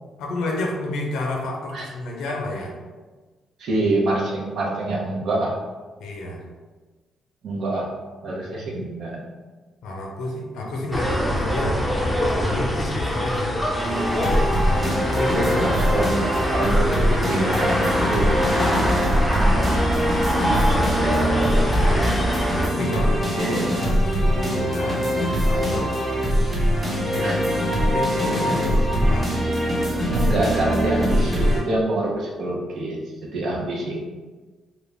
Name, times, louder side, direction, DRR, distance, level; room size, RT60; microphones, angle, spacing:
voice 1, 0.2-2.7 6.0-6.5 9.8-13.6 15.2-15.6 21.6-22.2 22.6-26.0 27.1-27.6 27.9-29.4, left 1 dB, 85° left, 0 dB, 0.5 m, -30 dB
voice 2, 3.6-5.6 7.4-7.9 8.2-9.3 15.3-15.5 15.8-20.8 21.0-21.2 23.4-23.7 26.9-27.4 30.1-34.0, right 2 dB, 70° right, -2 dB, 0.6 m, -27 dB
sound 1, 10.9-22.7, equal, 10° left, 0.5 m, -24 dB
sound 2, 13.8-31.6, equal, 10° right, 1.0 m, -22 dB
2.3 x 2.1 x 3.3 m, 1.3 s
cardioid pair, 90°, 0 cm